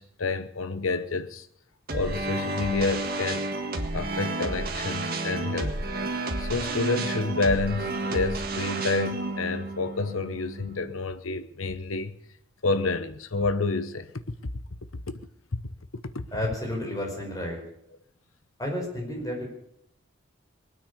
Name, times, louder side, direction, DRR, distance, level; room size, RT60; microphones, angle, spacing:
voice 1, 0.0-1.5 1.9-3.5 3.9-5.8 6.4-12.2 12.6-14.5 15.5-15.7 16.1-16.2, left 3 dB, 80° left, 1.0 m, -29 dB
sound 1, 1.9-11.0, right 2 dB, 45° right, 1.8 m, -31 dB
voice 2, 16.3-17.6 18.6-19.4, left 1 dB, 15° left, 5.4 m, -31 dB
21.0 x 9.5 x 6.9 m
head